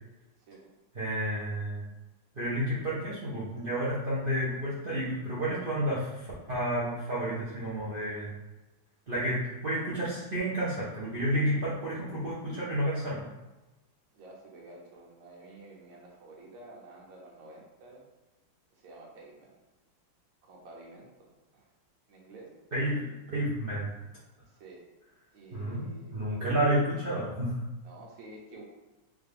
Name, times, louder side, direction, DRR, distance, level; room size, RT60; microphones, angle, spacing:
voice 1, 0.9-1.8 2.3-8.3 9.1-13.3 22.7-23.9 25.5-25.8 26.1-27.6, right 1 dB, 55° right, -9 dB, 0.6 m, -30 dB
voice 2, 14.1-18.0 18.8-19.6 20.4-21.7 22.1-22.5 24.5-24.9 25.3-26.4 27.8-28.6, right 2 dB, 70° right, -3 dB, 1.7 m, -50 dB
3.7 x 3.4 x 3.4 m, 1.1 s
omnidirectional pair, 2.3 m